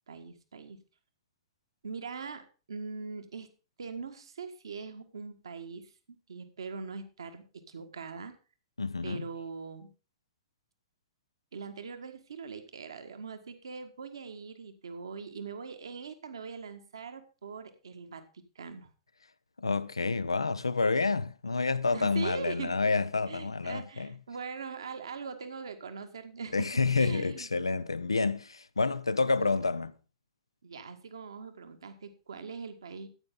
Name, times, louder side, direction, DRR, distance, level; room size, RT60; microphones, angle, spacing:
voice 1, 0.1-0.8 1.8-3.5 3.8-8.3 9.0-9.9 11.5-18.9 21.9-22.8 23.3-27.5 29.4-29.7 30.6-33.1, right 5 dB, 65° right, 1.5 m, -42 dB
voice 2, 8.8-9.3 19.6-24.1 26.5-29.9, left 4 dB, 80° left, 0.7 m, -29 dB
14.0 x 8.9 x 3.8 m
figure-of-eight pair, 105°, 3 cm